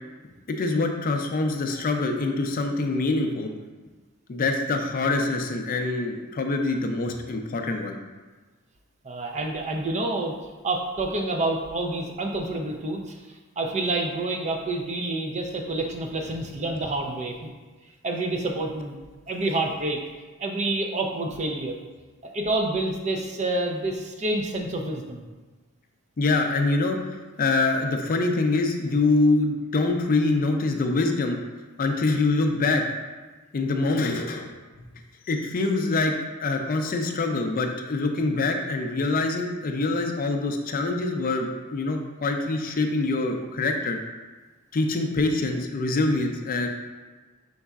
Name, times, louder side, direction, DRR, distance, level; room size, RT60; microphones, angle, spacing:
voice 1, 0.5-3.5 4.3-8.0 26.2-31.4 31.8-32.8 33.5-34.5 35.3-36.1 36.4-44.0 44.7-46.7, left 3 dB, 40° left, 4 dB, 0.4 m, -25 dB
voice 2, 9.0-10.4 10.6-17.5 18.0-18.9 19.3-20.0 20.4-21.8 22.2-25.3, right 2 dB, 35° right, 2 dB, 0.5 m, -28 dB
5.3 x 3.9 x 2.3 m, 1.3 s
head